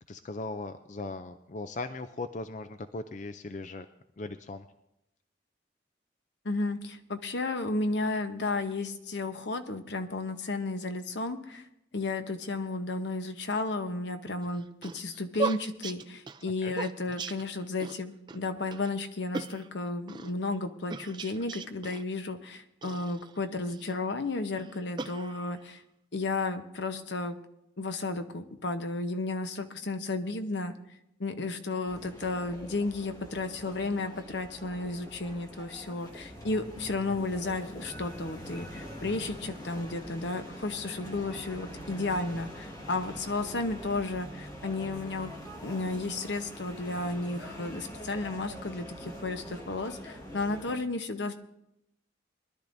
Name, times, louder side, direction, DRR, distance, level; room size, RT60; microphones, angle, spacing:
voice 1, 0.1-3.9 4.2-4.7 16.6-16.8 17.1-17.2, left 3 dB, 40° left, 9 dB, 0.4 m, -38 dB
voice 2, 6.4-11.7 11.9-25.8 26.1-27.4 27.8-30.7 31.2-51.4, left 2 dB, 75° left, 8 dB, 0.9 m, -33 dB
sound 1, 14.4-18.0 18.3-18.4 18.7-18.9 19.3-20.3 20.9-22.0 22.8-23.9 24.5-25.7, right 4 dB, 25° right, 0.4 m, -38 dB
sound 2, 31.9-50.8, equal, 20° left, 1.6 m, -44 dB
22.0 x 11.5 x 2.6 m, 0.82 s
head